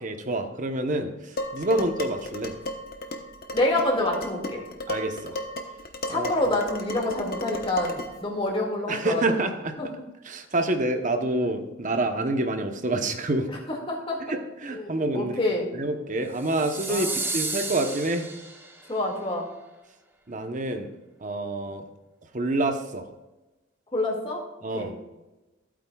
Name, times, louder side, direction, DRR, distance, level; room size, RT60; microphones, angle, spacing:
voice 1, 0.0-2.5 4.9-5.4 6.1-6.3 8.9-9.7 10.2-13.5 14.3-15.4 15.7-17.1 17.3-18.3 20.3-20.9 21.2-21.8 22.3-23.0 24.6-24.9, right 2 dB, 40° right, 7 dB, 0.9 m, -27 dB
Dishes pots and pans, 1.4-8.2, left 1 dB, 50° left, 1.0 m, -35 dB
voice 2, 3.5-4.6 6.1-9.4 9.8-9.9 13.5-14.2 14.7-15.7 16.9-17.1 18.9-19.5 23.9-24.4 24.7-24.9, left 1 dB, 25° left, -1 dB, 2.1 m, -27 dB
sound 1, 16.4-18.9, right 2 dB, 10° right, 0.9 m, -32 dB
15.0 x 8.7 x 2.4 m, 1.1 s
head